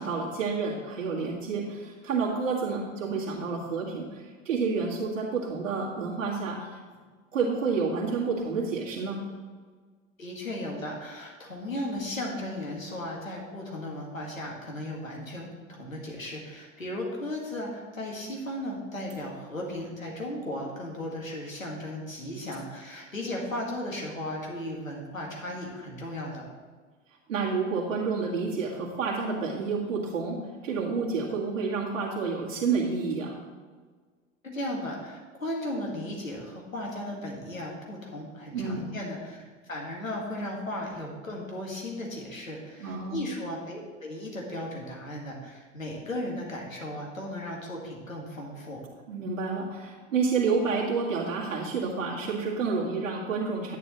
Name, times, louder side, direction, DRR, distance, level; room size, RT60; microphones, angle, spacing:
voice 1, 0.0-6.8 7.3-9.2 27.3-33.4 38.5-38.9 42.8-43.2 49.1-53.8, right 4 dB, 70° right, -5 dB, 2.0 m, -29 dB
voice 2, 10.2-26.5 34.4-48.8, left 1 dB, 90° left, -2 dB, 2.0 m, -36 dB
10.5 x 9.4 x 3.1 m, 1.5 s
figure-of-eight pair, 80°, 39 cm